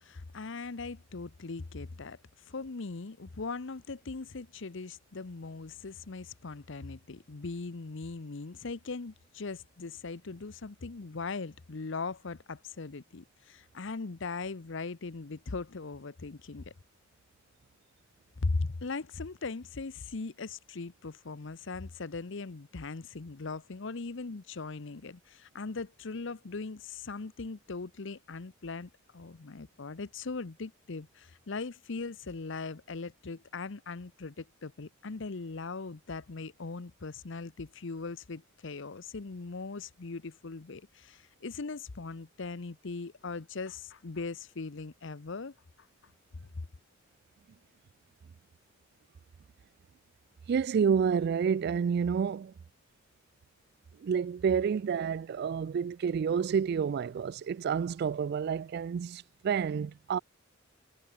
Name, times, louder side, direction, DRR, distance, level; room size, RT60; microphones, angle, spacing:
voice 1, 0.0-16.7 18.4-45.9, left 3 dB, 65° left, 0.8 m, -39 dB
voice 2, 50.5-52.5 54.0-60.2, right 6 dB, 55° right, 0.3 m, -29 dB
head